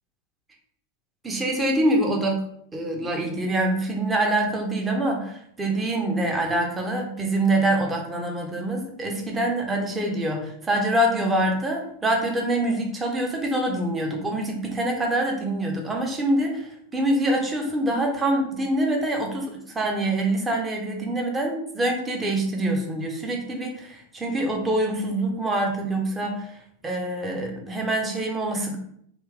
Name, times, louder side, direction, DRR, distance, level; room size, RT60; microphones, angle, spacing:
voice 1, 1.2-2.4 2.7-26.5 26.8-28.8, right 1 dB, 15° right, 1 dB, 0.9 m, -25 dB
3.3 x 3.0 x 3.5 m, 0.68 s
figure-of-eight pair, 90°, 0 cm